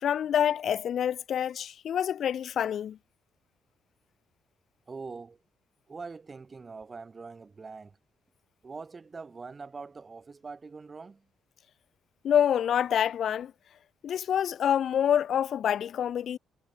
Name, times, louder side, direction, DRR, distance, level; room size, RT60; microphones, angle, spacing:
voice 1, 0.0-3.0 12.2-13.5 14.0-16.4, left 9 dB, 65° left, 0.4 m, -27 dB
voice 2, 4.9-5.4 5.9-8.0 8.6-11.3, right 4 dB, 30° right, 3.6 m, -43 dB
cardioid pair, 90°, 0 cm